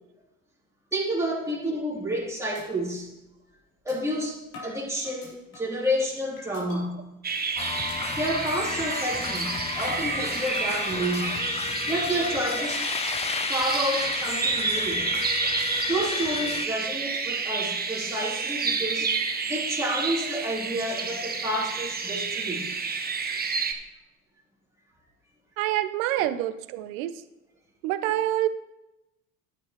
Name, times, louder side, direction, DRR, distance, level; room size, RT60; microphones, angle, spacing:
voice 1, 0.9-3.1 3.8-7.1 8.1-12.9 13.5-15.1 15.9-19.1 19.5-22.7, equal, 5° right, -4 dB, 3.1 m, -30 dB
sound 1, 1.9-2.2 2.5-2.6 3.1-3.2 3.9-4.0 4.5-5.8 6.4-6.8 7.2-7.5 7.9-8.0 8.4-8.6 9.2-9.3 9.9-11.1 11.7-12.1, left 3 dB, 65° left, 4.0 m, -45 dB
sound 2, 7.2-23.7, right 5 dB, 20° right, 1.2 m, -30 dB
sound 3, 7.6-16.7, left 6 dB, 15° left, 0.4 m, -32 dB
voice 2, 25.6-27.1 27.8-28.5, right 13 dB, 70° right, 13 dB, 0.7 m, -26 dB
10.5 x 8.9 x 3.1 m, 0.92 s
hypercardioid pair, 70°, 42 cm